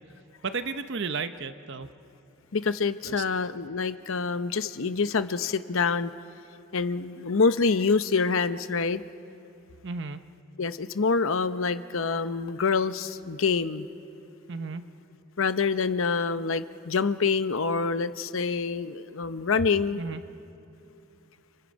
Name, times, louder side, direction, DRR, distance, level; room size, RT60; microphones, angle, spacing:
voice 1, 0.4-1.9 3.0-3.2 9.8-10.2 14.5-14.8 19.9-20.2, right 4 dB, 55° right, 10 dB, 0.7 m, -33 dB
voice 2, 2.5-6.1 6.7-9.0 10.6-13.9 15.4-20.0, left 4 dB, 65° left, 12 dB, 0.7 m, -26 dB
30.0 x 29.5 x 5.2 m, 2.8 s
head